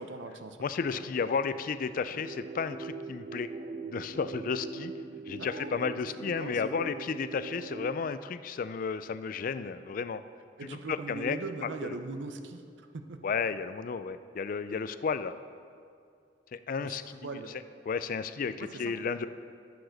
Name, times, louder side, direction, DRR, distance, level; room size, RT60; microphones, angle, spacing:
voice 1, 0.0-0.6 0.9-1.0 5.3-5.9 6.4-6.8 10.6-13.2 16.8-17.5 18.6-18.7, right 3 dB, 85° right, 7 dB, 0.7 m, -40 dB
voice 2, 0.6-3.5 3.9-4.9 5.3-10.2 10.6-12.0 13.2-15.4 16.5-17.4 17.9-19.3, left 5 dB, 50° left, 13 dB, 0.3 m, -33 dB
sound 1, 2.1-8.1, right 3 dB, 35° right, 0.5 m, -42 dB
13.0 x 4.8 x 6.4 m, 2.3 s
head